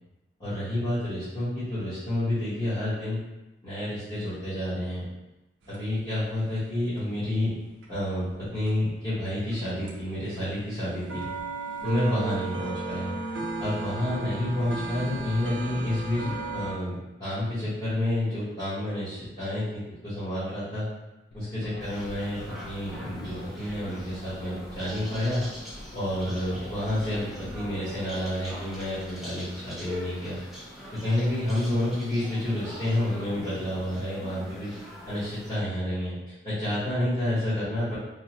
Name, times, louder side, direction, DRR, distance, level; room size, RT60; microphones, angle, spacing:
voice 1, 0.4-3.2 3.6-5.0 5.7-7.5 7.9-11.3 11.8-13.1 13.6-20.9 21.3-25.4 25.9-30.4 30.9-34.7 35.0-36.1 36.4-37.9, left 1 dB, 20° left, -15 dB, 1.0 m, -29 dB
sound 1, 5.6-8.9 9.2-16.7, right 3 dB, 90° right, 0.5 m, -35 dB
sound 2, 21.3-27.9, left 1 dB, 60° left, 0.4 m, -45 dB
sound 3, 21.8-35.6, left 1 dB, ahead, 0.4 m, -42 dB
2.8 x 2.0 x 2.8 m, 1.0 s
head